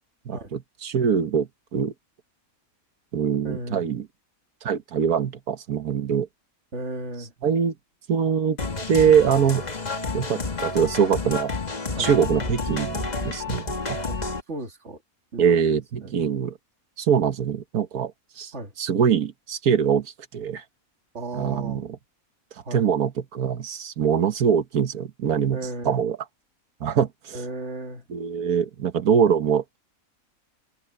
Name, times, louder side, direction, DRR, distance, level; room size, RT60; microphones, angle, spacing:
voice 1, 0.2-1.9 3.1-4.1 4.6-6.3 7.4-7.7 8.1-8.6 8.9-9.6 10.1-11.5 12.0-14.0 15.4-16.6 17.0-18.5 18.8-20.6 21.3-22.0 22.7-25.6 25.8-26.2 26.8-27.4 28.1-29.8, right 7 dB, 85° right, 1.7 m, -23 dB
voice 2, 3.4-3.9 6.7-7.3 11.9-12.1 14.0-14.2 14.5-15.0 15.3-16.1 18.5-18.7 21.1-21.8 22.6-22.9 25.5-26.0 27.3-28.0, right 2 dB, 50° right, 2.8 m, -35 dB
sound 1, 8.6-14.4, left 3 dB, 30° left, 1.6 m, -30 dB
omnidirectional pair, 1.5 m